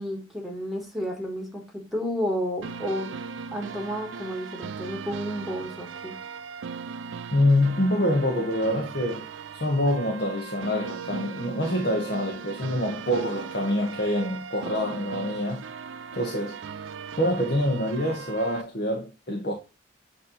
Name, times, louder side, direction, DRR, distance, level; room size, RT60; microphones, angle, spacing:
voice 1, 0.0-3.1 3.5-6.1, equal, ahead, 1.5 m, -31 dB
sound 1, 2.6-18.6, right 6 dB, 75° right, 0.4 m, -39 dB
voice 2, 7.3-9.3 9.6-15.6 16.2-16.6 17.2-19.5, left 1 dB, 50° left, 1.1 m, -25 dB
8.3 x 2.9 x 4.0 m
head